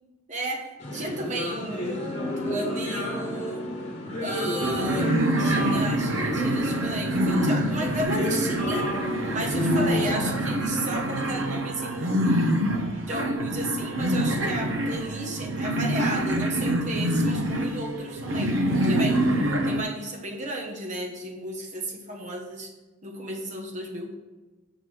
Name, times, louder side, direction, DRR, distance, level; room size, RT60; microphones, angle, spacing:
voice 1, 0.3-2.0 2.4-3.7 4.2-8.9 9.3-12.4 13.1-18.6 18.8-19.2 19.6-22.7 23.0-24.1, right 1 dB, 35° right, 1 dB, 1.2 m, -33 dB
sound 1, 0.8-10.4, left 1 dB, 35° left, 1.4 m, -31 dB
sound 2, 4.6-19.8, right 1 dB, 70° right, 0.7 m, -26 dB
6.0 x 5.0 x 6.2 m, 1.2 s
head